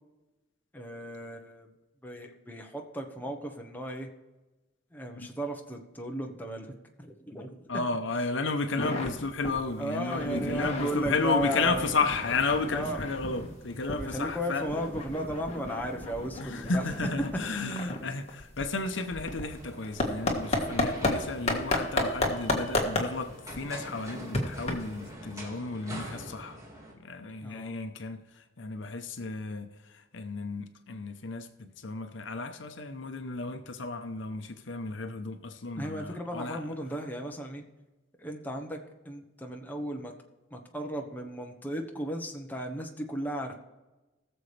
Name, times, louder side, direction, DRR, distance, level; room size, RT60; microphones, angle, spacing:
voice 1, 0.7-1.7 2.0-4.1 4.9-6.7 7.0-7.7 9.8-12.0 12.7-13.0 13.9-17.1 17.5-17.7 27.4-27.7 35.8-37.6 38.2-38.8 39.0-40.1 40.5-43.5, equal, 10° left, 1.0 m, -35 dB
voice 2, 7.7-14.7 16.4-26.6 26.9-36.6, left 3 dB, 65° left, 0.9 m, -33 dB
sound 1, 8.8-9.1 9.4-9.6 9.9-13.5 13.9-21.1 21.5-25.1, left 2 dB, 30° left, 1.6 m, -32 dB
sound 2, 10.3-15.3, right 1 dB, 80° right, 4.1 m, -51 dB
sound 3, 18.8-26.9, equal, 15° right, 2.1 m, -45 dB
20.0 x 7.0 x 3.3 m
head